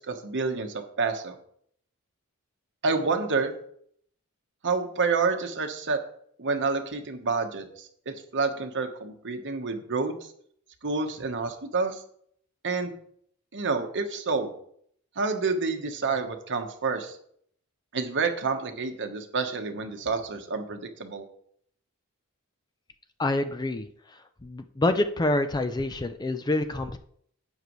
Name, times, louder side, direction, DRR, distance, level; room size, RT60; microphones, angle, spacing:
voice 1, 0.1-1.3 2.8-3.5 4.6-6.0 6.4-10.2 10.8-12.0 12.6-12.9 13.5-14.5 15.2-17.2 17.9-21.2, right 4 dB, 55° right, 6 dB, 1.1 m, -28 dB
voice 2, 23.2-23.9 24.4-27.0, left 2 dB, 20° left, 10 dB, 0.4 m, -26 dB
11.5 x 8.2 x 3.1 m, 0.65 s
head